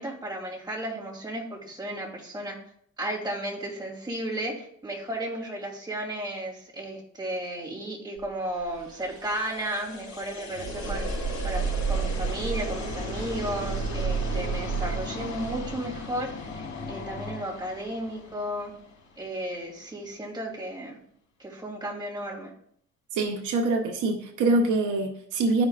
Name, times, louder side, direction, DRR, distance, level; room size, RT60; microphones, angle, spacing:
voice 1, 0.0-2.5 3.0-11.1 11.4-18.7 19.2-21.0 21.4-22.5, right 1 dB, 15° right, 3.0 m, -34 dB
sound 1, 8.2-8.3 8.5-17.3, right 5 dB, 50° right, 1.3 m, -32 dB
sound 2, 8.8-19.8, left 4 dB, 65° left, 2.1 m, -41 dB
sound 3, 11.5-18.5, left 3 dB, 30° left, 1.0 m, -40 dB
voice 2, 23.1-25.7, right 2 dB, 80° right, 0.9 m, -25 dB
12.5 x 5.2 x 2.5 m
cardioid pair, 90°, 30 cm